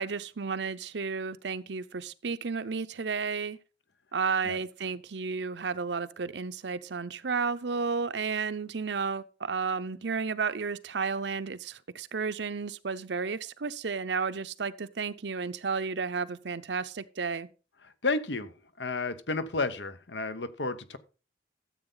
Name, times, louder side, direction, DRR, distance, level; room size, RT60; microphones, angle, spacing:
voice 1, 0.0-3.6 4.1-17.5, right 5 dB, 80° right, 0.7 m, -32 dB
voice 2, 17.8-21.0, left 3 dB, 85° left, 1.0 m, -32 dB
13.0 x 8.0 x 3.9 m
head